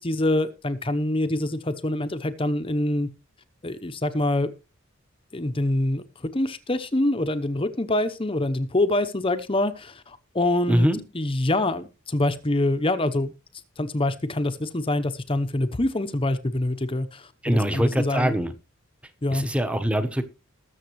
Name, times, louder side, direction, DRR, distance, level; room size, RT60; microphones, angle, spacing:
voice 1, 0.0-3.1 3.6-4.5 5.3-10.9 11.1-13.3 13.8-18.3 19.2-19.4, left 1 dB, 25° left, 10 dB, 0.8 m, -25 dB
voice 2, 10.7-11.0 17.4-18.5 19.3-20.2, equal, 5° right, 9 dB, 1.0 m, -23 dB
20.0 x 7.1 x 3.1 m, 0.29 s
head